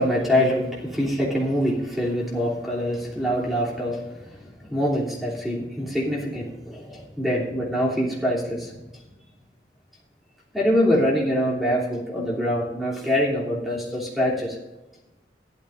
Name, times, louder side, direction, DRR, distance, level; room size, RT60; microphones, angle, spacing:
voice 1, 0.0-9.0 10.5-14.6, equal, ahead, -5 dB, 3.1 m, -24 dB
15.0 x 12.0 x 2.6 m, 1.0 s
head